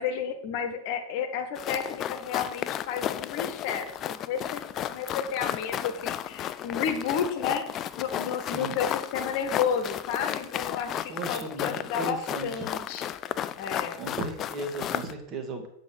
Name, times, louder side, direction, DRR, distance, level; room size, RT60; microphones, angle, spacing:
voice 1, 0.0-12.2 12.4-13.1 13.5-14.1, left 7 dB, 45° left, 7 dB, 1.3 m, -32 dB
sound 1, 1.6-15.1, left 10 dB, 30° left, 0.4 m, -33 dB
voice 2, 8.5-8.8 11.1-12.6 13.9-15.7, right 2 dB, 30° right, 4 dB, 1.9 m, -36 dB
8.5 x 5.3 x 6.4 m, 0.71 s
figure-of-eight pair, 90°, 0 cm